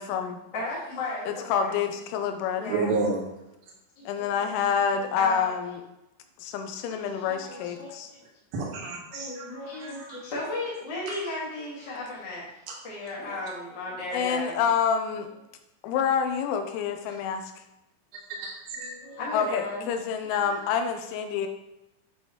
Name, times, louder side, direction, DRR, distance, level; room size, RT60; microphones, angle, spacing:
voice 1, 0.0-0.4 1.3-2.7 4.1-5.8 6.4-8.1 14.1-15.3 15.8-17.5 19.3-21.5, left 7 dB, 85° left, 6 dB, 3.0 m, -27 dB
voice 2, 0.5-1.7 2.5-2.9 3.9-5.5 7.1-8.2 9.1-12.5 12.8-14.6 18.7-19.9 20.3-20.6, left 2 dB, 55° left, -7 dB, 1.2 m, -35 dB
voice 3, 2.7-3.2 6.9-7.0 8.5-10.2 11.1-11.2 13.2-13.3 18.3-19.2, right 3 dB, 70° right, -3 dB, 2.4 m, -31 dB
8.1 x 3.1 x 4.2 m, 0.91 s
omnidirectional pair, 5.5 m